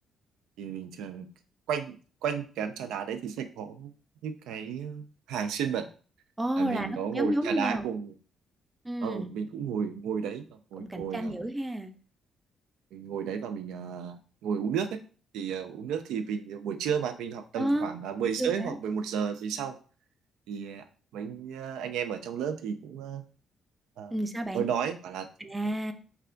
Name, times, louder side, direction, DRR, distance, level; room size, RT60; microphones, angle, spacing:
voice 1, 0.6-1.3 1.7-2.0 2.2-3.9 4.2-5.9 6.6-8.1 9.0-10.5 10.7-11.4 12.9-15.0 15.3-19.8 20.5-23.2 24.0-24.2 24.5-25.3, right 7 dB, 90° right, 9 dB, 0.3 m, -33 dB
voice 2, 6.4-7.9 8.8-9.3 10.8-11.9 17.6-17.9 18.4-18.7 24.1-24.7 25.4-25.9, right 1 dB, 15° right, 7 dB, 0.4 m, -30 dB
3.2 x 2.3 x 3.7 m, 0.39 s
cardioid pair, 90°, 0 cm